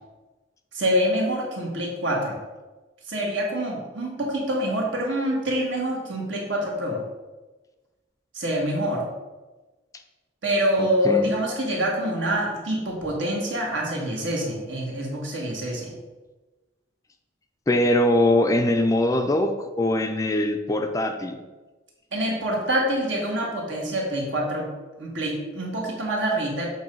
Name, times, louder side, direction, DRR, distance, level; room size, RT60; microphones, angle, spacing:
voice 1, 0.7-2.4 3.0-7.0 8.3-9.0 10.4-16.0 22.1-26.7, equal, 75° right, -2 dB, 1.6 m, -26 dB
voice 2, 10.8-11.3 17.7-21.4, left 1 dB, 15° left, 6 dB, 0.4 m, -22 dB
7.6 x 2.7 x 5.3 m, 1.2 s
head